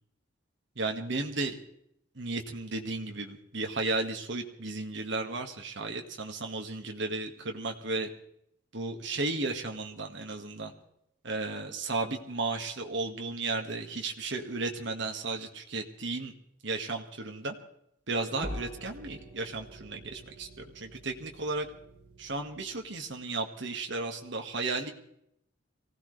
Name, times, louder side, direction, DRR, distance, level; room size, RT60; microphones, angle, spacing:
voice 1, 0.8-1.6 2.2-8.1 8.7-10.7 11.2-16.3 16.6-17.6 18.1-20.5 20.8-21.7 22.2-24.9, right 3 dB, 60° right, 3 dB, 1.8 m, -34 dB
sound 1, 18.4-23.2, equal, 30° right, 7.5 m, -45 dB
24.0 x 16.5 x 3.4 m, 0.75 s
head